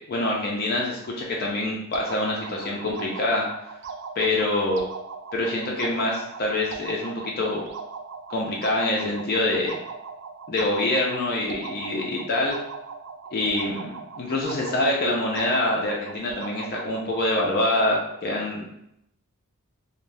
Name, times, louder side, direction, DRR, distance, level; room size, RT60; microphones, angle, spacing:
voice 1, 0.1-3.5 4.2-4.8 5.3-7.6 8.3-9.8 10.5-12.6 13.3-18.6, left 2 dB, 45° left, -2 dB, 0.4 m, -25 dB
sound 1, 1.9-17.3, right 5 dB, 55° right, 0.3 m, -39 dB
2.5 x 2.0 x 3.1 m, 0.80 s
head